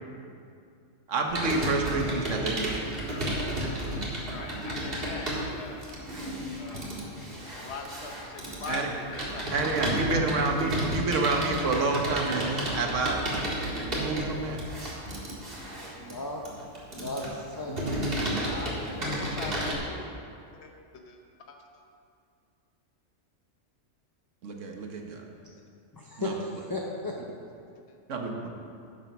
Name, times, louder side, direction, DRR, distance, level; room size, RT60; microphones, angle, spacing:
voice 1, 1.1-2.9 8.7-8.9 9.5-13.2 13.8-14.6 17.7-17.8 24.4-25.2 26.2-26.4 28.1-28.5, right 3 dB, 75° right, 2 dB, 1.5 m, -29 dB
Computer keyboard, 1.3-19.7, right 1 dB, 45° right, 2.2 m, -32 dB
voice 2, 4.2-5.9 6.4-10.3 18.4-20.0 20.6-21.6 27.9-28.0, left 4 dB, 60° left, 3 dB, 1.3 m, -42 dB
voice 3, 16.0-16.4 16.9-18.2 25.9-27.2, left 2 dB, 20° left, -2 dB, 0.7 m, -35 dB
10.5 x 7.4 x 6.1 m, 2.4 s
omnidirectional pair, 1.3 m